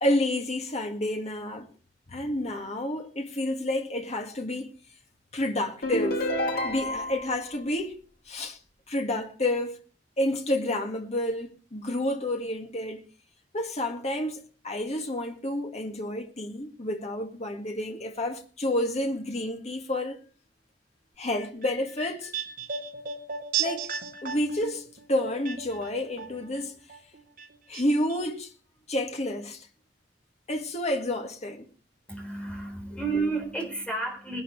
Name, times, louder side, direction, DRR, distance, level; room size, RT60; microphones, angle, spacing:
voice 1, 0.0-1.7 2.1-4.8 5.3-6.2 6.6-8.0 8.3-8.6 8.9-9.8 10.2-13.0 13.5-20.2 21.2-22.3 23.6-23.9 24.2-26.7 27.7-28.5 28.9-29.7 30.5-31.7 32.9-33.0, left 1 dB, 35° left, 2.0 m, -30 dB
sound 1, 5.8-7.3, left 1 dB, 55° left, 2.1 m, -28 dB
sound 2, 21.4-26.6 26.9-27.8 28.1-28.2, right 6 dB, 50° right, 3.0 m, -35 dB
voice 2, 32.1-34.4, right 3 dB, 5° left, 4.2 m, -31 dB
21.0 x 12.0 x 3.3 m
head